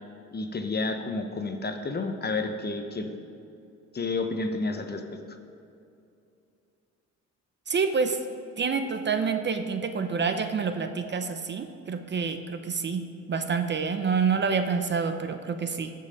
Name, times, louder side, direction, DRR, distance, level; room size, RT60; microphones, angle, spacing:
voice 1, 0.3-3.2 3.9-5.0, left 3 dB, 35° left, 6 dB, 1.1 m, -30 dB
voice 2, 7.7-8.2 8.6-15.9, right 5 dB, 35° right, 8 dB, 0.7 m, -28 dB
14.5 x 5.6 x 5.3 m, 2.6 s
cardioid pair, 90°, 30 cm